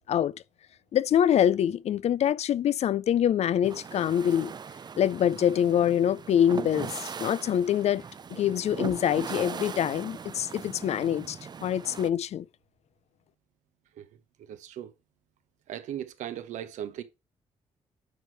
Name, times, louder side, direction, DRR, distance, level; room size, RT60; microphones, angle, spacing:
voice 1, 0.9-4.5 5.0-8.0 8.3-12.5, left 10 dB, 60° left, 0.4 m, -25 dB
sound 1, 3.6-12.1, right 6 dB, 35° right, 0.4 m, -40 dB
voice 2, 14.4-14.9 15.7-17.0, right 10 dB, 80° right, 0.9 m, -38 dB
8.1 x 4.8 x 4.5 m
supercardioid pair, 60°, 12 cm